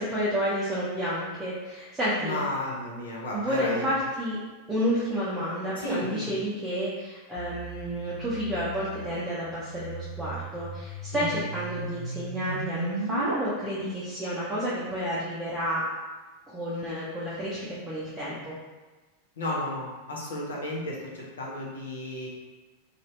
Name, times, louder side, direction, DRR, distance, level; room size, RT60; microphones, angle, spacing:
voice 1, 0.0-2.4 3.3-4.4 4.7-15.8 16.5-18.5, equal, 10° right, -9 dB, 0.6 m, -30 dB
voice 2, 2.2-3.9 5.8-6.4 11.1-11.5 19.4-22.3, left 1 dB, 65° left, -4 dB, 0.8 m, -33 dB
sound 1, 7.4-13.3, right 2 dB, 70° right, 0.4 m, -37 dB
2.7 x 2.4 x 3.1 m, 1.2 s
figure-of-eight pair, 90°, 0 cm